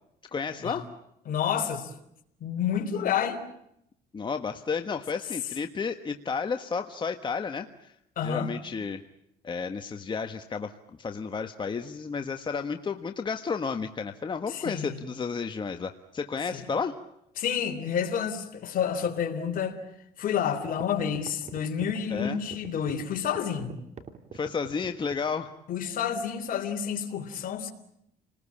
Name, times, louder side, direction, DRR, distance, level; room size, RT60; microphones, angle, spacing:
voice 1, 0.3-0.9 4.1-7.9 8.2-9.0 9.4-16.9 22.1-22.4 24.3-25.6, left 5 dB, 30° left, 1.4 m, -32 dB
voice 2, 1.3-1.9 2.4-3.4 8.2-8.5 14.5-15.0 16.5-16.6 17.4-19.8 20.2-23.7 25.7-27.7, left 8 dB, 55° left, 3.7 m, -29 dB
sound 1, 20.2-20.3 20.7-25.3, right 5 dB, 45° right, 3.2 m, -43 dB
30.0 x 20.5 x 8.7 m
cardioid pair, 110°, 17 cm